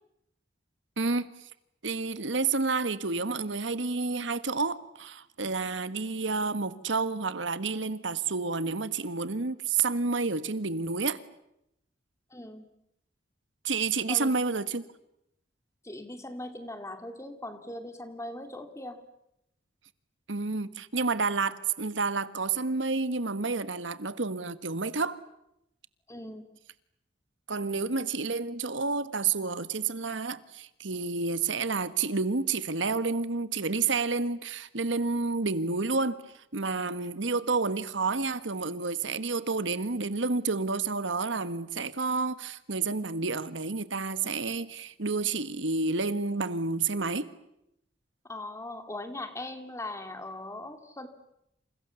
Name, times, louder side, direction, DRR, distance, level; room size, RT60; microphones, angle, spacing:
voice 1, 1.0-1.3 1.8-11.2 13.6-14.8 20.3-25.2 27.5-36.2 36.5-47.3, right 4 dB, 85° right, 1.5 m, -30 dB
voice 2, 12.3-12.6 14.1-14.3 15.8-19.0 26.1-26.5 48.3-51.1, left 1 dB, 15° left, 2.5 m, -40 dB
28.5 x 28.5 x 7.1 m
head